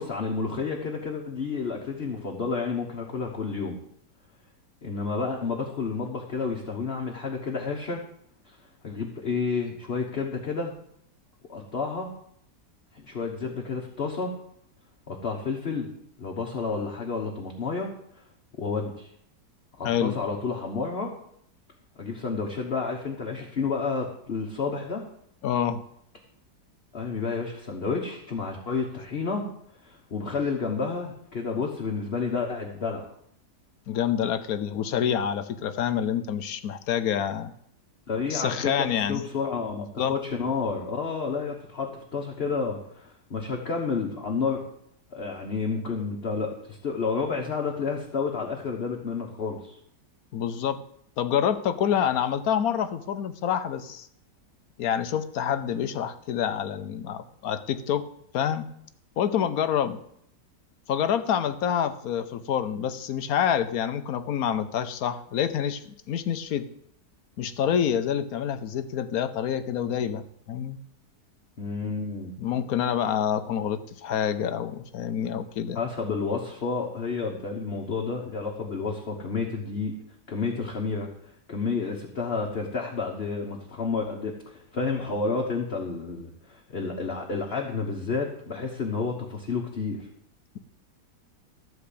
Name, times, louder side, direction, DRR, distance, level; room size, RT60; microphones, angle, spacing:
voice 1, 0.0-3.8 4.8-8.0 8.5-8.6 8.8-10.7 11.5-12.1 13.0-14.3 15.1-15.9 16.2-17.9 18.6-19.1 19.8-21.1 22.0-25.1 26.9-29.5 29.8-33.1 38.1-44.6 45.1-49.7 71.6-72.3 75.7-79.9 80.3-81.1 81.5-90.1, left 4 dB, 40° left, 0 dB, 1.3 m, -30 dB
voice 2, 19.8-20.1 25.4-25.8 33.9-37.5 38.3-39.2 40.0-40.2 50.3-50.8 51.2-54.1 54.8-58.1 58.3-58.7 59.2-60.0 60.9-66.7 67.4-70.8 72.4-75.8, left 9 dB, 65° left, 11 dB, 1.1 m, -27 dB
13.5 x 4.6 x 8.4 m, 0.71 s
omnidirectional pair, 1.8 m